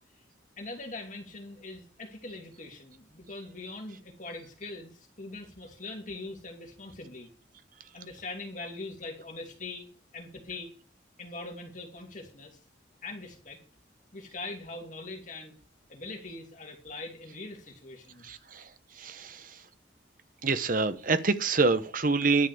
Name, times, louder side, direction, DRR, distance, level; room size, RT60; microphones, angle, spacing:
voice 1, 0.6-7.3 7.9-9.9 10.1-10.7 11.2-12.6 13.0-13.6 14.1-15.6 15.9-18.3, left 2 dB, 40° left, 2.9 m, -42 dB
voice 2, 18.2-19.6 20.4-22.5, right 3 dB, 45° right, 1.0 m, -27 dB
11.5 x 7.6 x 6.9 m
head